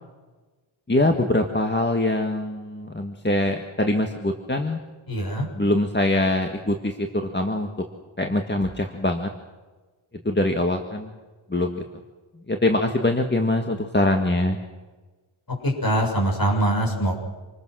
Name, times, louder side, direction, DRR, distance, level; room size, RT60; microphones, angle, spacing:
voice 1, 0.9-4.8 5.6-7.7 8.2-9.3 10.2-11.1 11.5-11.8 12.5-14.6, left 1 dB, 20° left, 4 dB, 1.8 m, -23 dB
voice 2, 5.1-5.5 15.6-17.1, right 1 dB, 45° left, 1 dB, 6.9 m, -23 dB
27.5 x 20.5 x 6.4 m, 1.3 s
wide cardioid pair, 75°, 50 cm